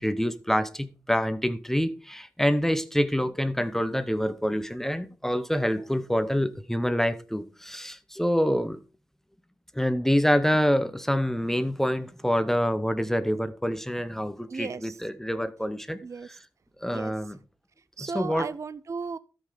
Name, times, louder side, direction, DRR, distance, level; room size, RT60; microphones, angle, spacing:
voice 1, 0.0-8.8 9.7-16.0 16.8-17.4 18.0-18.5, equal, 5° left, 0.9 m, -26 dB
voice 2, 14.5-15.0 16.0-16.4 16.9-17.1 18.0-19.2, right 5 dB, 45° right, 0.5 m, -35 dB
13.0 x 5.8 x 5.0 m
cardioid pair, 65°, 7 cm